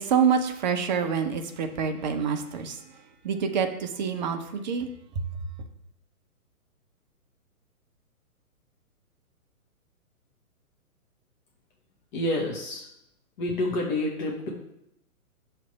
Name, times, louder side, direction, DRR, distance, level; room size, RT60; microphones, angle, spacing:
voice 1, 0.0-5.3, right 6 dB, 30° right, 6 dB, 0.6 m, -27 dB
voice 2, 12.1-12.9 13.4-14.5, left 1 dB, 35° left, -1 dB, 1.1 m, -28 dB
6.2 x 3.2 x 5.7 m, 0.81 s
figure-of-eight pair, 125°, 44 cm